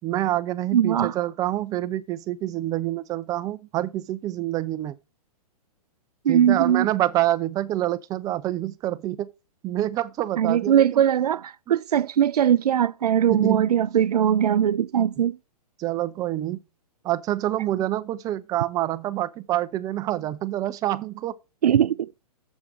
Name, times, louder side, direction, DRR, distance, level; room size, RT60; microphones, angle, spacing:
voice 1, 0.0-5.0 6.3-9.3 9.6-11.0 13.3-13.7 15.8-16.6 17.0-21.3, right 14 dB, 20° right, 0.4 m, -27 dB
voice 2, 0.7-1.1 6.2-6.9 10.4-15.4 21.6-22.1, right 9 dB, 85° right, 0.4 m, -20 dB
7.2 x 4.9 x 7.1 m
hypercardioid pair, 135°, 19 cm